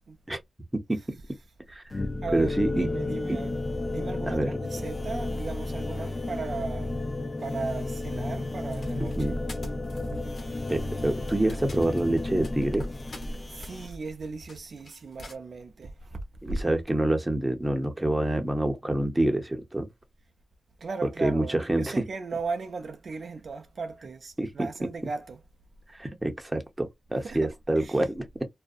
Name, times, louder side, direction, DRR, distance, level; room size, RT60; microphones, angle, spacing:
voice 1, 0.9-1.5 2.2-3.6 3.9-7.0 7.4-9.3 10.5-11.1 13.2-16.7 20.8-25.4 27.2-28.1, right 4 dB, 65° right, 0.4 m, -37 dB
voice 2, 1.7-2.0 2.3-2.9 3.3-3.4 4.3-4.5 9.2-9.4 10.7-12.9 16.4-19.9 21.0-22.0 24.4-24.7 25.9-28.3, right 1 dB, 15° right, 0.7 m, -27 dB
sound 1, 1.9-13.9, left 2 dB, 35° left, 0.4 m, -32 dB
sound 2, 8.7-15.4, equal, 60° left, 1.1 m, -45 dB
2.4 x 2.1 x 2.4 m
wide cardioid pair, 80°, 0 cm